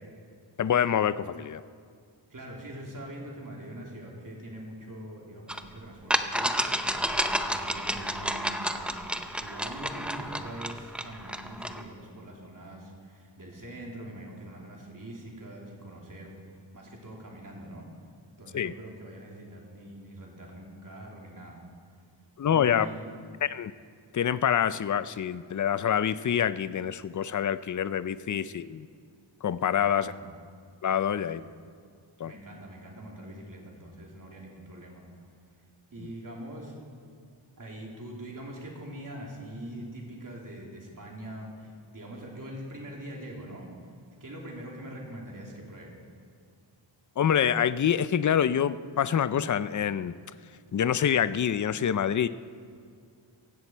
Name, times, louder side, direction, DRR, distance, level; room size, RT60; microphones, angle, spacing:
voice 1, 0.6-1.6 18.5-18.7 22.4-22.9 23.4-23.7 24.1-28.9 29.4-30.1 30.8-31.4 32.2-32.3 47.2-50.2 50.7-52.3, left 8 dB, 40° left, 15 dB, 0.5 m, -26 dB
voice 2, 2.3-17.9 18.4-21.6 22.5-23.1 29.8-30.3 31.1-31.4 32.2-35.0 35.9-36.7 37.6-43.7 44.2-45.9, right 1 dB, 45° right, -1 dB, 3.0 m, -43 dB
sound 1, 5.5-5.6 6.1-11.8, equal, ahead, 0.6 m, -30 dB
17.0 x 15.5 x 4.5 m, 2.2 s
wide cardioid pair, 125°, 47 cm